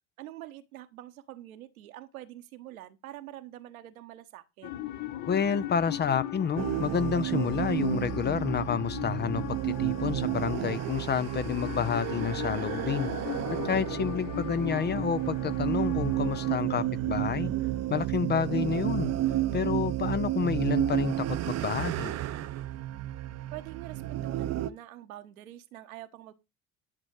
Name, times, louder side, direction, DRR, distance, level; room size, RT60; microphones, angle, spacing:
voice 1, 0.2-4.7 23.5-26.3, right 14 dB, 75° right, 1.3 m, -45 dB
sound 1, 4.6-16.5, left 14 dB, 45° left, 1.0 m, -38 dB
voice 2, 5.3-13.1 13.6-17.5 17.9-19.1 19.5-22.1, left 7 dB, 25° left, 0.6 m, -29 dB
sound 2, 6.6-24.7, right 13 dB, 35° right, 0.8 m, -31 dB
11.0 x 6.2 x 4.7 m
hypercardioid pair, 70°, 42 cm